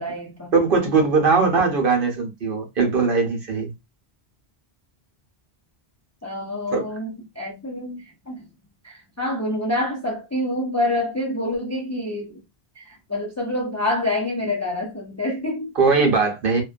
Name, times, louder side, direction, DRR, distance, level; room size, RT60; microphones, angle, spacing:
voice 1, 0.0-0.5 6.2-8.5 8.8-12.4 12.7-15.7, left 1 dB, 20° left, 0.5 m, -27 dB
voice 2, 0.5-3.7 6.7-6.9 15.8-16.6, right 4 dB, 60° right, 0.9 m, -20 dB
2.5 x 2.2 x 2.4 m
omnidirectional pair, 1.1 m